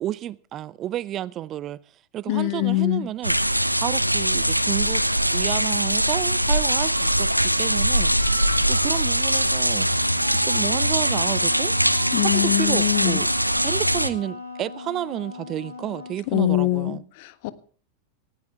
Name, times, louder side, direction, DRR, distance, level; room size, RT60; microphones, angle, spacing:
voice 1, 0.0-1.8 2.1-3.4 3.7-5.0 5.3-8.1 8.7-9.9 10.3-11.7 12.2-13.3 13.6-17.0, right 12 dB, 30° right, 0.6 m, -31 dB
voice 2, 2.3-3.1 12.1-13.2 16.3-17.5, left 17 dB, 50° left, 1.5 m, -23 dB
sound 1, 3.2-14.1, equal, 90° right, 0.9 m, -22 dB
sound 2, 6.6-13.8, right 4 dB, 75° right, 4.8 m, -41 dB
Wind instrument woodwind instrument, 10.0-16.3, left 4 dB, 80° left, 5.5 m, -39 dB
19.5 x 16.0 x 3.5 m
figure-of-eight pair, 90°, 0 cm